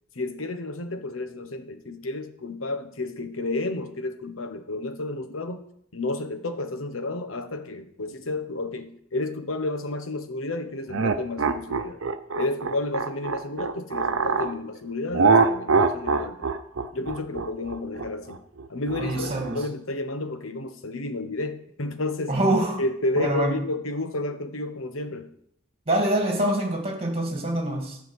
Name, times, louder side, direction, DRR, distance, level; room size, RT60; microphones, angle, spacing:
voice 1, 0.1-5.6 5.9-12.0 12.4-16.5 16.9-18.4 18.7-22.4 22.8-25.3, left 2 dB, 75° left, 8 dB, 1.1 m, -31 dB
sound 1, 10.9-14.5 15.1-19.6, right 4 dB, 70° right, 0.7 m, -24 dB
voice 2, 19.0-19.6 22.3-22.8 23.2-23.6 25.9-28.0, right 1 dB, 30° right, 2 dB, 2.4 m, -25 dB
12.0 x 5.2 x 8.1 m, 0.72 s
head